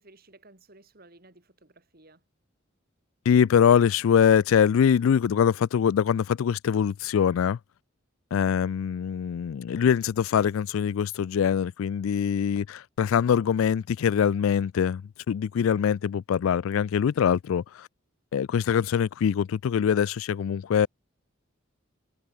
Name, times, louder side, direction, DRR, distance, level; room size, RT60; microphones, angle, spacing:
voice 1, 0.0-2.2, right 2 dB, 45° right, 3.5 m, -55 dB
voice 2, 3.3-7.6 8.3-15.0 15.3-17.9 18.3-20.9, left 8 dB, 85° left, 0.3 m, -23 dB
head